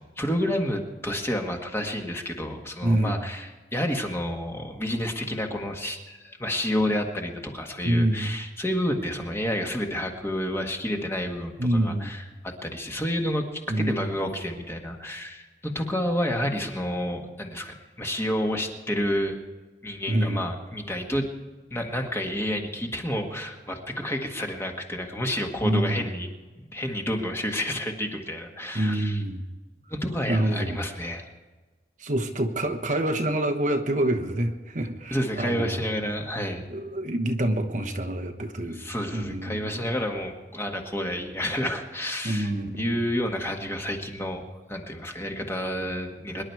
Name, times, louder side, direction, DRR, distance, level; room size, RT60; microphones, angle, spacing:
voice 1, 0.0-19.4 19.8-21.3 21.7-26.3 26.7-29.2 29.9-31.3 35.1-36.7 38.6-44.4 44.7-46.4, equal, 15° left, 2 dB, 1.7 m, -30 dB
voice 2, 2.8-3.2 7.8-8.4 11.6-12.2 13.7-14.0 20.1-20.4 25.6-26.1 28.7-29.4 30.3-30.8 32.0-35.8 36.7-38.9 39.1-39.8 42.2-42.9, right 1 dB, 45° right, 5 dB, 1.1 m, -26 dB
24.5 x 11.0 x 4.7 m, 1.3 s
head